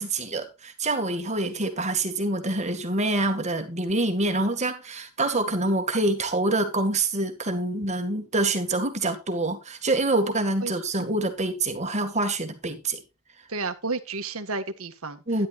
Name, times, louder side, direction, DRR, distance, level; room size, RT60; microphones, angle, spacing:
voice 1, 0.0-13.0 15.3-15.5, right 2 dB, 30° right, 1.9 m, -26 dB
voice 2, 13.5-15.2, right 3 dB, 65° right, 1.6 m, -32 dB
13.5 x 10.5 x 2.5 m
head